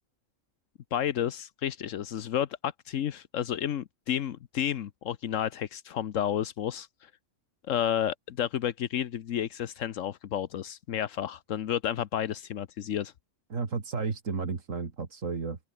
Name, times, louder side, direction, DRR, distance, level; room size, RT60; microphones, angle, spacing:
voice 1, 0.9-7.1 7.7-13.1, left 10 dB, 80° left, 1.2 m, -31 dB
voice 2, 13.5-15.6, right 4 dB, 80° right, 2.6 m, -32 dB
open air
omnidirectional pair, 1.3 m